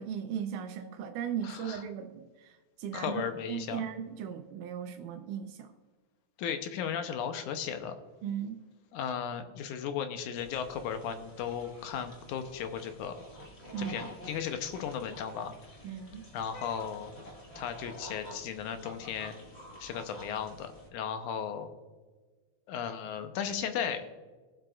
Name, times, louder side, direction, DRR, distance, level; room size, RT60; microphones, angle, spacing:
voice 1, 0.0-5.7 8.2-8.6 13.7-14.1 15.8-16.3, right 8 dB, 85° right, 6 dB, 2.2 m, -37 dB
voice 2, 1.4-1.8 2.9-3.8 6.4-7.9 8.9-13.2 13.8-15.5 16.3-17.1 17.6-19.4 19.8-21.7 22.7-24.1, left 8 dB, 90° left, 8 dB, 2.3 m, -35 dB
sound 1, 10.3-20.9, equal, 30° left, 1.3 m, -49 dB
21.0 x 7.7 x 2.4 m, 1.4 s
omnidirectional pair, 3.5 m